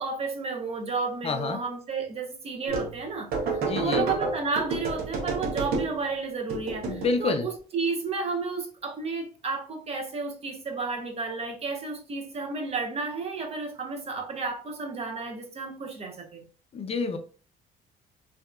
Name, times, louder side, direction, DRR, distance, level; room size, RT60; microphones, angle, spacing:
voice 1, 0.0-16.4, right 4 dB, 40° right, 0.8 m, -32 dB
voice 2, 1.2-1.6 3.6-4.0 6.9-7.5 16.7-17.2, left 4 dB, 35° left, 0.4 m, -28 dB
sound 1, 2.7-3.0 3.3-6.1 6.5-7.2, right 3 dB, 65° right, 0.8 m, -30 dB
2.7 x 2.5 x 2.2 m
cardioid pair, 110°, 17 cm